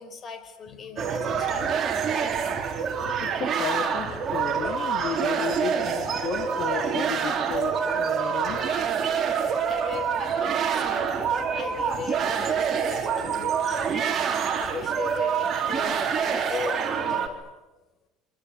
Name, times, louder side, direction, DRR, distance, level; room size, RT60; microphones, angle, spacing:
voice 1, 0.0-1.8 4.9-5.1 9.7-14.2 14.6-17.4, left 6 dB, 35° left, 8 dB, 4.9 m, -38 dB
sound 1, 1.0-17.3, right 7 dB, 35° right, 4.1 m, -26 dB
voice 2, 3.2-8.7, left 9 dB, 55° left, 4 dB, 2.9 m, -33 dB
26.0 x 25.0 x 8.5 m, 1.1 s
cardioid pair, 125°, 0 cm